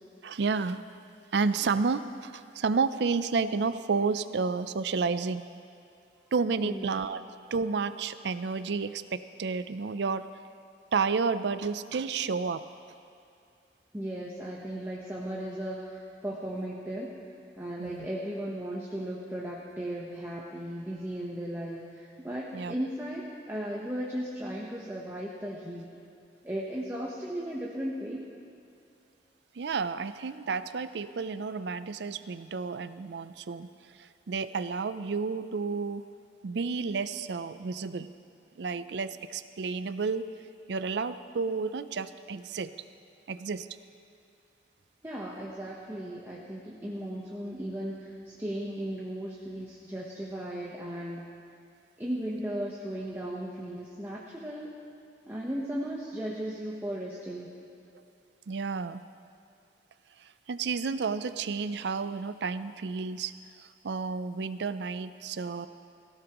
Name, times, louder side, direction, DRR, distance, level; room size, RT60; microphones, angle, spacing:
voice 1, 0.2-0.8 1.3-5.4 6.3-7.2 7.5-10.3 10.9-12.6 17.8-18.1 22.5-22.7 29.6-33.7 34.0-36.1 36.4-38.1 38.6-40.3 40.7-42.7 43.3-43.7 58.5-59.0 60.5-63.3 63.6-65.7, right 4 dB, 70° right, 13 dB, 0.4 m, -31 dB
voice 2, 6.6-7.0 13.9-17.2 17.6-25.9 26.4-28.3 45.0-51.3 52.0-54.7 55.3-57.5, right 1 dB, 15° right, -4 dB, 1.0 m, -36 dB
18.0 x 16.0 x 3.0 m, 2.6 s
head